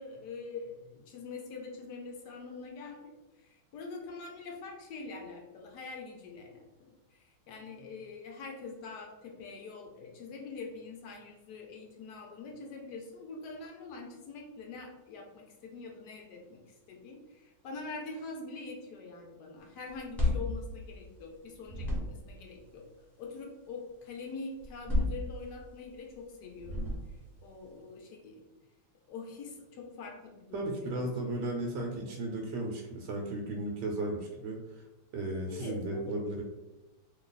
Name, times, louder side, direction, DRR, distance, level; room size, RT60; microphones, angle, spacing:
voice 1, 0.0-3.1 3.5-22.9 23.2-26.9 27.4-28.4 29.1-31.0 35.5-36.2, left 4 dB, 70° left, 1 dB, 1.0 m, -44 dB
sound 1, 19.9-21.4 21.6-22.4 24.6-25.8 26.6-27.4, left 2 dB, ahead, 0.8 m, -32 dB
voice 2, 30.5-34.8 35.1-36.4, right 1 dB, 75° right, 0 dB, 1.1 m, -35 dB
3.0 x 2.3 x 3.8 m, 1.1 s
omnidirectional pair, 2.1 m